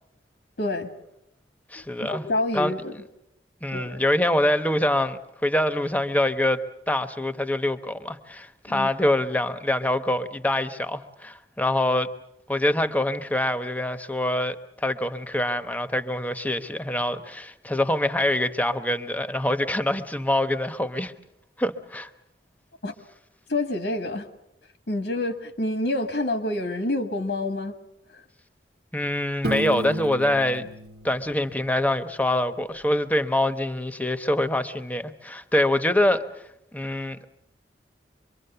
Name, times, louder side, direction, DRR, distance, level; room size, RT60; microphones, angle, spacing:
voice 1, 0.6-0.9 1.7-2.9 3.7-4.0 8.7-8.9 22.8-22.9 23.5-24.3 24.9-27.7 28.1-28.2, left 2 dB, 85° left, 1.7 m, -28 dB
voice 2, 1.7-2.2 2.5-2.7 3.6-12.1 12.5-21.1 21.6-22.1 28.9-30.7 31.0-36.2 36.7-37.3, left 1 dB, 10° left, 1.0 m, -25 dB
Piano, 29.4-32.2, right 1 dB, 60° right, 1.2 m, -33 dB
25.5 x 23.0 x 6.9 m
head